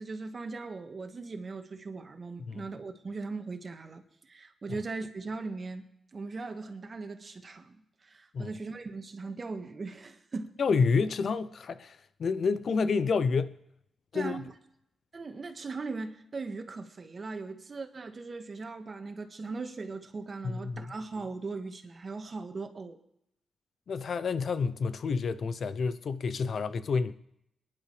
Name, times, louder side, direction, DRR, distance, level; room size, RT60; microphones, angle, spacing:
voice 1, 0.0-10.6 14.1-14.6 15.1-23.0, right 3 dB, 50° right, 1.7 m, -39 dB
voice 2, 10.6-13.6 14.1-14.4 20.4-20.9 23.9-27.1, left 5 dB, 65° left, 0.8 m, -29 dB
23.0 x 10.5 x 3.4 m
supercardioid pair, 45°, 0 cm